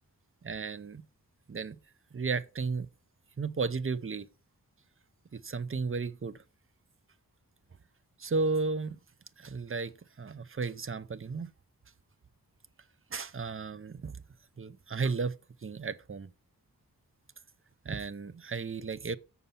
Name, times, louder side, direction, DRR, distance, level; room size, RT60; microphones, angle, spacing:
voice 1, 0.4-1.0 1.5-1.8 2.1-2.9 3.4-4.3 5.3-6.4 8.2-9.0 9.4-9.9 10.2-11.5 13.1-14.2 14.6-15.4 15.6-16.3 17.8-19.2, right 4 dB, 35° right, 0.6 m, -34 dB
6.9 x 6.7 x 5.7 m
wide cardioid pair, 75°, 36 cm